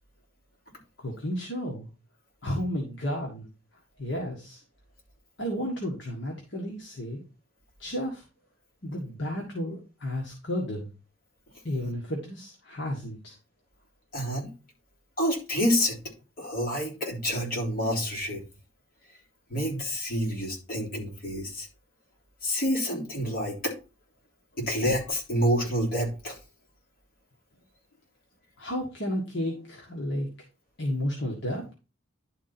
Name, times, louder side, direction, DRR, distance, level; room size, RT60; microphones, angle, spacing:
voice 1, 1.0-1.9 2.4-3.4 4.0-4.6 5.4-7.2 7.8-8.2 8.8-10.9 11.6-13.4 28.6-30.3 30.8-31.7, equal, 60° left, 0 dB, 1.5 m, -32 dB
voice 2, 14.1-14.5 15.2-16.0 16.4-18.4 19.5-21.7 22.4-23.7 24.6-26.4, equal, 45° left, -3 dB, 3.3 m, -28 dB
11.0 x 3.9 x 4.3 m, 0.31 s
head